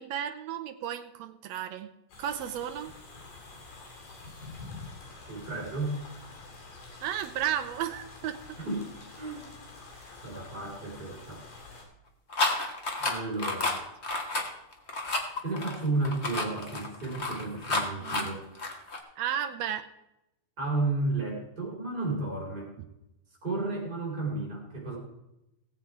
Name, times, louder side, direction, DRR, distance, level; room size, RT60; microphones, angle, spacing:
voice 1, 0.0-1.9 2.2-2.9 7.0-8.4 13.7-13.8 18.0-18.4 19.2-19.9, right 10 dB, 85° right, 8 dB, 1.5 m, -33 dB
sound 1, 2.1-11.8, left 3 dB, 80° left, 4.6 m, -47 dB
voice 2, 5.3-6.0 8.6-8.9 9.2-9.5 10.2-11.4 13.0-13.8 15.4-18.4 20.6-22.7 23.4-25.0, right 2 dB, 30° right, -3 dB, 4.3 m, -32 dB
sound 2, 12.3-19.0, left 2 dB, 45° left, 0.8 m, -30 dB
18.0 x 8.1 x 4.6 m, 0.89 s
omnidirectional pair, 3.8 m